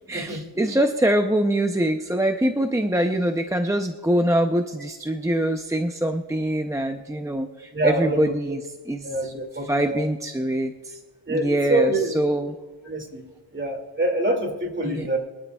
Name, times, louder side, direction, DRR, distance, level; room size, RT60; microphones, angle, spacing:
voice 1, 0.1-8.6 8.9-9.3 9.7-11.0 11.3-12.5 14.8-15.1, right 1 dB, 5° right, 5 dB, 0.5 m, -24 dB
voice 2, 7.7-8.6 9.0-10.0 11.3-12.1 12.8-13.2 13.5-15.2, right 2 dB, 25° right, 3 dB, 2.3 m, -25 dB
24.5 x 12.5 x 2.3 m, 1.3 s
wide cardioid pair, 150°, 49 cm